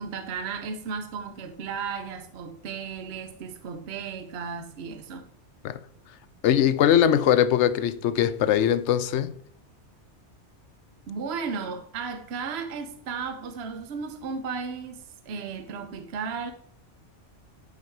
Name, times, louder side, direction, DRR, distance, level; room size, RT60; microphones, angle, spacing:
voice 1, 0.0-5.3 11.1-16.5, right 5 dB, 65° right, 1.0 m, -34 dB
voice 2, 6.4-9.3, left 10 dB, 75° left, 0.9 m, -21 dB
10.5 x 5.0 x 4.5 m
omnidirectional pair, 1.2 m